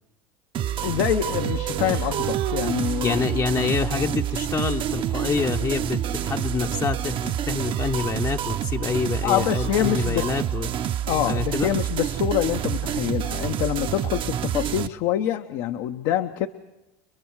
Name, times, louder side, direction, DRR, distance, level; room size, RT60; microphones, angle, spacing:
sound 1, 0.5-14.9, right 10 dB, 45° right, 0.8 m, -28 dB
voice 1, 0.8-3.2 9.2-10.3 11.1-16.5, left 11 dB, 70° left, 7 dB, 0.9 m, -25 dB
Singing, 1.4-6.7, right 11 dB, 90° right, 2.2 m, -34 dB
voice 2, 3.0-10.7 11.3-11.7, left 5 dB, 30° left, 3 dB, 0.8 m, -27 dB
30.0 x 22.5 x 4.7 m, 1.0 s
supercardioid pair, 105°, 12 cm